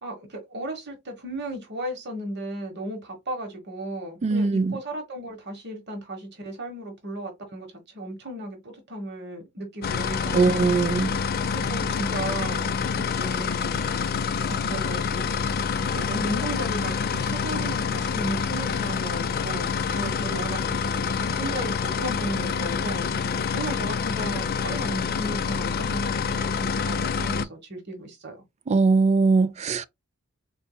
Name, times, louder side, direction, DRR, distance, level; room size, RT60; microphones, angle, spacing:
voice 1, 0.0-7.7 7.9-10.7 11.5-13.8 14.5-15.3 15.9-21.1 21.4-28.4, right 1 dB, 55° right, 1.2 m, -35 dB
voice 2, 4.2-4.8 10.3-11.1 28.7-29.8, right 4 dB, 35° right, 0.3 m, -21 dB
sound 1, 9.8-27.4, left 6 dB, 45° left, 0.4 m, -27 dB
4.0 x 3.5 x 2.2 m
head